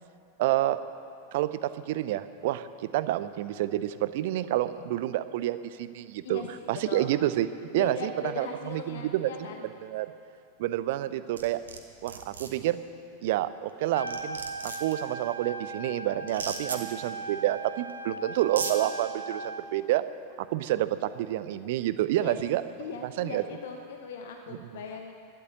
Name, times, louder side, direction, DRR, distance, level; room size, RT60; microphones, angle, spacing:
voice 1, 0.4-0.8 1.3-6.4 6.7-7.5 7.7-8.1 8.4-9.3 9.8-10.1 10.6-11.6 12.0-12.8 13.2-20.0 20.4-22.6 23.0-23.4 24.6-24.8, right 14 dB, 50° right, 14 dB, 0.6 m, -29 dB
voice 2, 6.2-7.1 7.7-9.6 16.5-16.9 22.2-22.4 22.8-25.1, left 5 dB, 55° left, 4 dB, 1.0 m, -39 dB
sound 1, 11.4-11.8 12.1-12.5 13.7-13.8 14.1-14.9 16.3-16.8 17.9-18.0 18.4-18.7, right 5 dB, 70° right, 1.4 m, -35 dB
Trumpet, 13.8-19.6, right 2 dB, 90° left, 0.8 m, -38 dB
12.5 x 11.0 x 8.6 m, 2.4 s
figure-of-eight pair, 90°, 0 cm